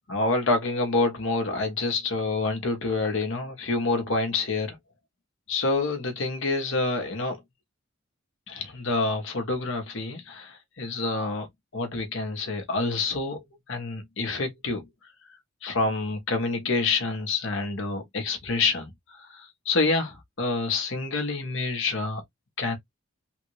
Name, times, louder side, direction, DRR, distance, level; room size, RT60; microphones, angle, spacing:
voice 1, 0.1-4.8 5.5-7.4 8.5-11.5 11.7-13.4 13.7-14.8 15.6-18.9 19.2-22.2 22.6-22.8, left 3 dB, 65° left, 1.3 m, -27 dB
3.6 x 2.5 x 3.2 m
head